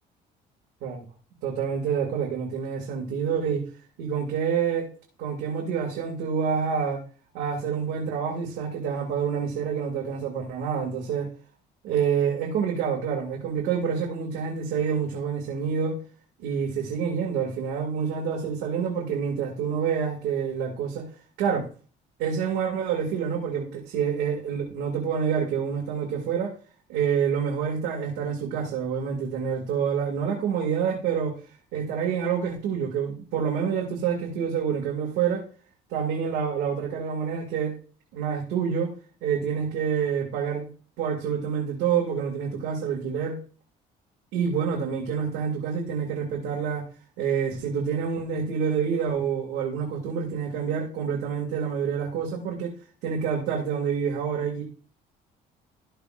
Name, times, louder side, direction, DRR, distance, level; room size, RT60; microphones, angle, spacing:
voice 1, 1.4-3.7 4.0-4.9 5.2-7.0 7.3-11.3 11.8-16.0 16.4-21.1 21.4-21.7 22.2-26.6 26.9-31.4 31.7-35.4 35.9-37.8 38.1-38.9 39.2-40.7 41.0-43.4 44.3-46.8 47.2-52.8 53.0-54.6, right 7 dB, 85° right, 2.2 m, -27 dB
13.0 x 6.8 x 2.5 m
cardioid pair, 110°, 17 cm